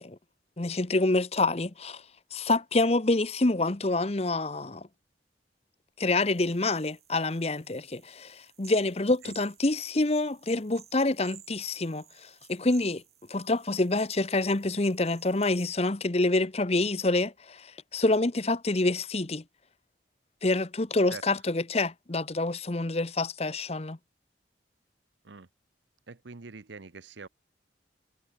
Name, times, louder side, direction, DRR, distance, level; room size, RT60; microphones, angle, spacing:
voice 1, 0.6-2.0 2.3-4.9 6.0-13.0 13.3-19.4 20.4-24.0, left 2 dB, 35° left, 0.9 m, -27 dB
sound 1, 6.1-15.7, right 11 dB, 35° right, 3.7 m, -56 dB
voice 2, 26.1-27.3, right 4 dB, 80° right, 0.9 m, -44 dB
head